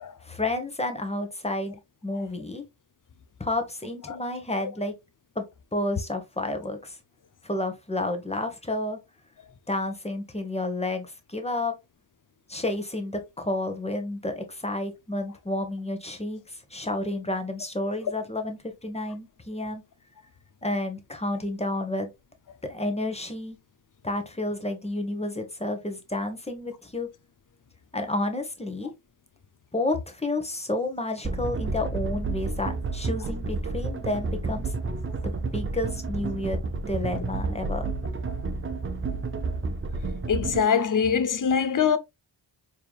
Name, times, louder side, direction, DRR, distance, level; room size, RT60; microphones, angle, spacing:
voice 1, 0.2-2.6 3.4-4.9 5.3-5.4 5.7-7.0 7.4-9.0 9.7-11.7 12.5-19.8 20.6-22.1 22.6-23.6 24.0-27.1 27.9-28.9 29.7-34.7 35.5-36.6 36.9-37.9, left 2 dB, 15° left, 1.2 m, -30 dB
sound 1, 31.2-40.6, right 3 dB, 25° right, 0.6 m, -30 dB
voice 2, 40.3-42.0, left 7 dB, 40° left, 0.7 m, -23 dB
4.6 x 3.4 x 2.4 m
cardioid pair, 65°, 48 cm